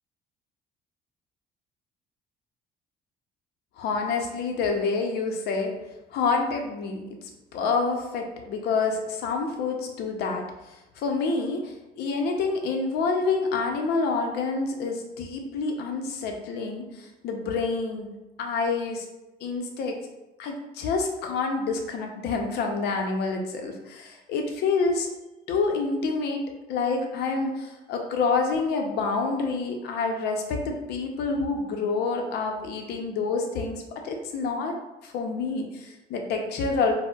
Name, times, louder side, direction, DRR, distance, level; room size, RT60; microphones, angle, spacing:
voice 1, 3.8-5.7 6.1-18.1 18.4-19.1 19.4-20.0 20.4-25.1 25.5-26.4 26.7-34.8 35.0-36.9, left 4 dB, 75° left, 3 dB, 0.6 m, -28 dB
4.4 x 2.1 x 2.3 m, 1.0 s
cardioid pair, 110°, 17 cm